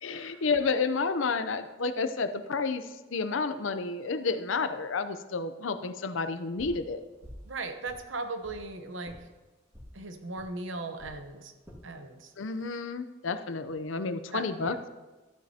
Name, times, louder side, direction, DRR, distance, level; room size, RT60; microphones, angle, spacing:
voice 1, 0.0-7.0 12.4-14.9, left 4 dB, 80° left, 10 dB, 0.6 m, -31 dB
sound 1, 6.6-6.9 7.2-7.5 7.8-8.6 9.0-9.2 9.7-9.9 10.4-10.5 11.0-11.2 11.6-11.8 12.4-12.8, equal, 15° right, 1.9 m, -48 dB
voice 2, 7.5-9.3 9.9-11.5 11.8-12.3 14.3-14.8, right 3 dB, 75° right, 7 dB, 0.9 m, -38 dB
13.0 x 9.3 x 2.8 m, 1.2 s
head